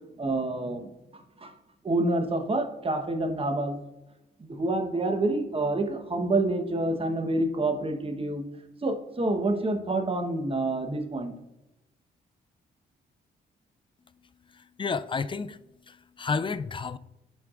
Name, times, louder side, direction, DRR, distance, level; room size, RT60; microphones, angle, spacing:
voice 1, 0.2-1.5 1.8-3.8 4.4-8.4 8.8-11.3, right 2 dB, 30° right, 1.1 m, -28 dB
voice 2, 14.5-15.6 15.9-17.0, left 5 dB, 25° left, 0.4 m, -31 dB
10.5 x 4.6 x 2.5 m
cardioid pair, 75°, 19 cm